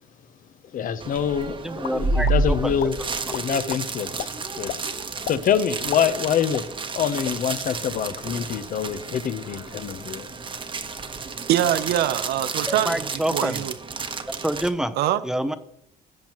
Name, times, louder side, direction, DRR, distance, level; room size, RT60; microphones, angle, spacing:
voice 1, 0.6-3.0 3.3-4.8 5.2-10.3, left 8 dB, 55° left, 0.8 m, -26 dB
sound 1, 1.0-14.7, right 3 dB, 30° right, 1.1 m, -30 dB
voice 2, 1.6-2.8 12.7-13.7 14.4-14.9 15.2-15.5, right 1 dB, 5° right, 0.7 m, -27 dB
sound 2, 1.8-2.4 2.8-2.9 3.3-3.8 4.2-4.3 4.7-4.8 5.2-5.4 5.8-7.0 7.2-7.4 7.8-8.1, left 15 dB, 70° left, 0.4 m, -33 dB
voice 3, 11.4-13.0 13.3-13.7 15.0-15.2, right 12 dB, 75° right, 0.6 m, -23 dB
17.5 x 7.2 x 3.0 m
cardioid pair, 110°, 17 cm